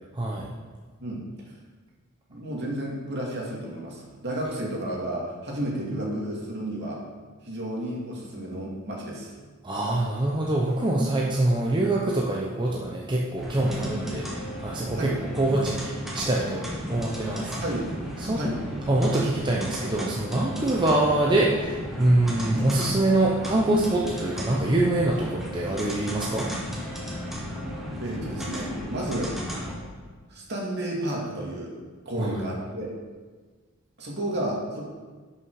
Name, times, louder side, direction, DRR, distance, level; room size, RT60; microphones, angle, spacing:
voice 1, 0.2-0.5 9.6-17.6 18.2-18.5 18.9-26.5 32.2-32.4, right 2 dB, 20° right, -3 dB, 0.8 m, -24 dB
voice 2, 2.3-7.0 7.4-9.3 14.9-15.1 17.6-17.8 18.3-18.5 28.0-29.3 30.3-31.7 32.1-32.9 34.0-34.8, right 1 dB, 55° right, -3 dB, 2.3 m, -32 dB
sound 1, 13.4-29.8, equal, ahead, 1.5 m, -35 dB
11.0 x 5.8 x 4.8 m, 1.4 s
head